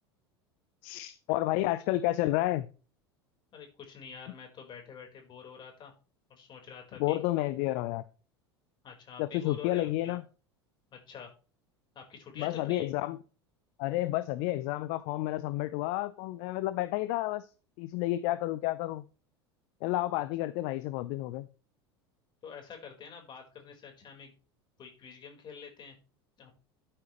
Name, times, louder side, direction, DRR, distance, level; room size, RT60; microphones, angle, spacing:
voice 1, 0.8-2.7 7.0-8.0 9.2-10.2 12.4-13.2 13.8-17.5 17.8-19.0 19.8-21.5, left 16 dB, 50° left, 15 dB, 0.8 m, -30 dB
voice 2, 3.5-5.9 6.3-7.2 8.8-10.2 10.9-11.3 11.9-12.9 22.4-24.3 24.8-25.9 26.4-26.5, left 6 dB, 35° left, 2 dB, 4.7 m, -47 dB
12.0 x 9.5 x 3.2 m, 0.36 s
figure-of-eight pair, 80°, 14 cm